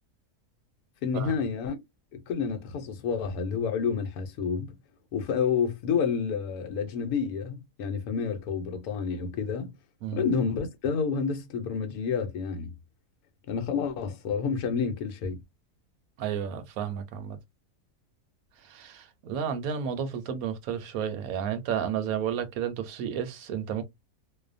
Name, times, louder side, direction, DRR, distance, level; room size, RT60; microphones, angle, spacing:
voice 1, 1.0-1.8 2.1-4.7 5.1-9.7 10.1-12.7 13.5-15.4, left 6 dB, 75° left, 1.1 m, -29 dB
voice 2, 16.2-17.4 18.6-23.8, right 8 dB, 70° right, 1.0 m, -32 dB
2.7 x 2.2 x 2.4 m
omnidirectional pair, 1.7 m